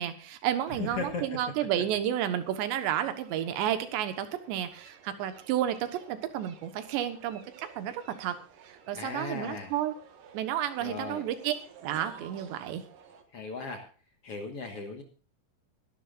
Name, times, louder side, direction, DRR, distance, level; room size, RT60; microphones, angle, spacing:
voice 1, 0.0-7.5 7.8-8.4 8.9-9.9 10.3-11.5 11.8-12.8, right 11 dB, 80° right, 10 dB, 3.4 m, -31 dB
voice 2, 0.8-1.4 8.9-9.7 10.8-11.3 13.3-13.9 14.2-15.0, left 4 dB, 65° left, 4 dB, 1.4 m, -37 dB
sound 1, 2.4-13.2, right 7 dB, 60° right, 2.7 m, -53 dB
22.0 x 11.5 x 2.5 m, 0.36 s
omnidirectional pair, 5.1 m